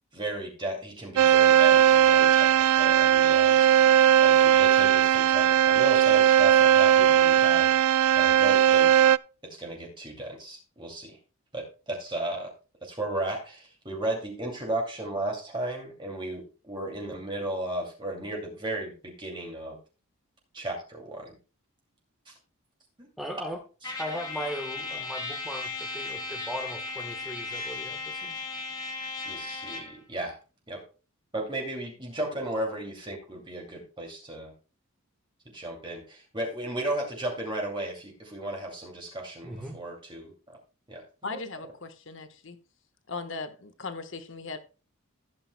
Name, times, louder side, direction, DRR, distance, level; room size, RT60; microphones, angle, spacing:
voice 1, 0.1-3.9 4.2-9.1 9.4-11.2 11.5-12.5 12.8-19.8 20.5-21.4 22.3-22.4 23.0-23.1 29.3-30.4 30.7-30.8 31.3-34.5 35.5-40.3 40.9-41.4, right 1 dB, 20° right, 2.5 m, -35 dB
sound 1, 1.2-9.2, right 10 dB, 90° right, 0.4 m, -19 dB
voice 2, 23.2-23.6 24.0-28.3 39.4-39.8, equal, ahead, 1.2 m, -38 dB
Trumpet, 23.8-30.0, left 3 dB, 15° left, 2.6 m, -36 dB
voice 3, 41.2-42.6 43.1-44.6, left 3 dB, 55° left, 1.3 m, -38 dB
15.5 x 8.9 x 2.2 m
head